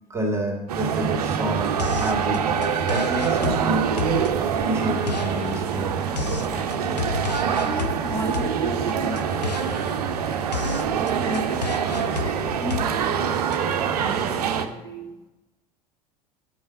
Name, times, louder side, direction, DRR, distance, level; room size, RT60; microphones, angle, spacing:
voice 1, 0.1-2.4 2.9-3.9 4.4-5.9, right 1 dB, 15° right, 0 dB, 2.0 m, -29 dB
sound 1, 0.7-14.7, right 7 dB, 70° right, 0.8 m, -25 dB
sound 2, 1.8-13.6, left 5 dB, 85° left, 0.5 m, -33 dB
voice 2, 6.1-15.3, equal, 15° left, -1 dB, 1.9 m, -37 dB
9.1 x 5.4 x 7.0 m, 1.0 s
figure-of-eight pair, 70°, 21 cm